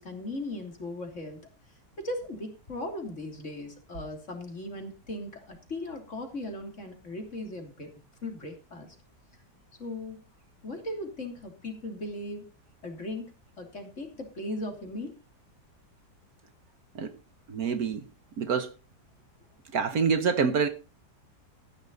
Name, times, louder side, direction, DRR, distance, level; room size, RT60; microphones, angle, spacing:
voice 1, 0.0-1.4 2.0-7.9 8.2-8.9 9.8-10.2 10.6-12.5 12.8-15.1, left 1 dB, 45° left, 3.3 m, -38 dB
voice 2, 17.5-18.0 18.4-18.7 19.7-20.7, right 6 dB, 60° right, 1.6 m, -26 dB
14.5 x 10.0 x 4.1 m
omnidirectional pair, 1.8 m